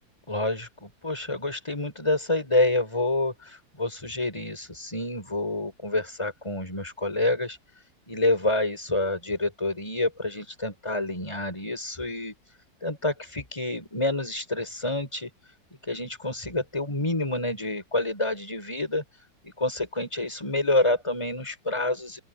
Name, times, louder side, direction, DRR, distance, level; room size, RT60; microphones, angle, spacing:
voice 1, 0.3-7.6 8.1-12.3 12.8-15.3 15.9-19.0 19.4-22.2, left 2 dB, 15° left, 5.6 m, -28 dB
open air
omnidirectional pair, 2.0 m